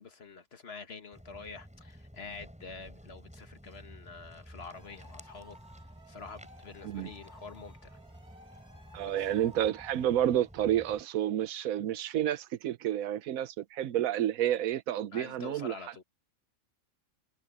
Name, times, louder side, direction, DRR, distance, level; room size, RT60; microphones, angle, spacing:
voice 1, 0.0-5.6 6.1-8.0 9.0-9.3 15.1-16.0, left 4 dB, 50° left, 1.8 m, -47 dB
Walk footsteps, 1.1-11.0, equal, 5° right, 7.1 m, -52 dB
sound 1, 4.7-10.1, equal, 50° right, 3.9 m, -56 dB
voice 2, 8.9-15.8, right 11 dB, 90° right, 1.1 m, -30 dB
omnidirectional pair, 1.4 m